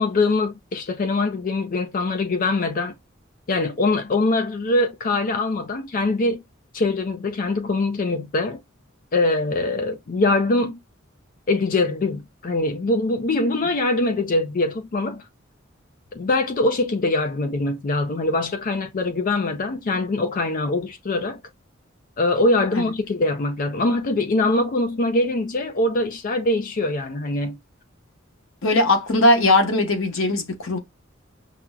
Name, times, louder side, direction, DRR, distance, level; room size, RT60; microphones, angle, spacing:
voice 1, 0.0-2.9 3.5-6.4 6.7-8.6 9.1-10.8 11.5-15.3 16.1-21.4 22.2-27.6, left 2 dB, 45° left, 0.4 m, -23 dB
voice 2, 28.6-30.8, left 2 dB, 90° left, 0.9 m, -19 dB
5.8 x 2.0 x 2.2 m
head